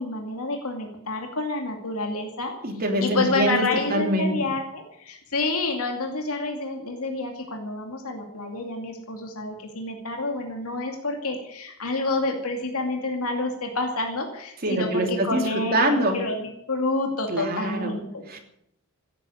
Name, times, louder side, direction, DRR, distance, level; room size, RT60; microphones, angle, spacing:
voice 1, 0.0-2.5 3.0-18.2, left 2 dB, 80° left, 3 dB, 2.5 m, -28 dB
voice 2, 2.6-4.4 14.6-16.2 17.3-17.9 18.3-18.4, right 1 dB, 45° right, 3 dB, 3.1 m, -24 dB
15.5 x 9.6 x 9.4 m, 0.75 s
head